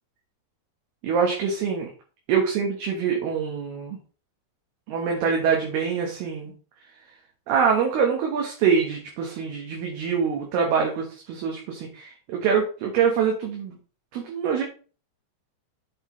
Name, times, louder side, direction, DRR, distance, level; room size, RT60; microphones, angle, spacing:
voice 1, 1.0-1.9 2.3-4.0 4.9-6.5 7.5-13.8 14.1-14.6, right 6 dB, 70° right, 1 dB, 2.9 m, -24 dB
8.6 x 8.1 x 3.1 m, 0.37 s
omnidirectional pair, 5.3 m